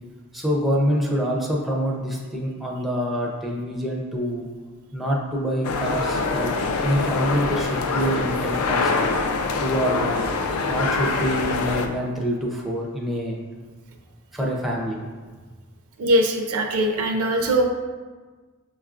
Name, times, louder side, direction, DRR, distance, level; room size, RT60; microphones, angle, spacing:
voice 1, 0.3-4.5 4.9-6.5 6.8-9.1 9.6-13.4 14.3-15.0, equal, ahead, -3 dB, 0.4 m, -26 dB
sound 1, 5.6-11.9, left 4 dB, 70° left, 0.4 m, -24 dB
voice 2, 16.0-17.7, right 1 dB, 65° right, 3 dB, 0.5 m, -21 dB
6.0 x 2.3 x 2.4 m, 1.4 s
head